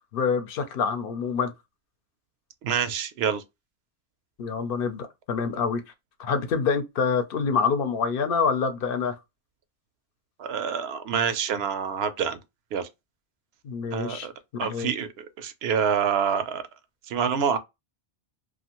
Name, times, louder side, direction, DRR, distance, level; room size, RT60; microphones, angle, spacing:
voice 1, 0.1-1.5 4.4-5.8 6.2-9.2 13.6-14.3 14.5-14.9, left 5 dB, 65° left, 0.8 m, -26 dB
voice 2, 2.6-3.4 10.4-12.4 12.7-12.9 13.9-14.3 14.6-16.6 17.1-17.6, right 7 dB, 85° right, 0.8 m, -27 dB
2.5 x 2.4 x 2.8 m
omnidirectional pair, 1.0 m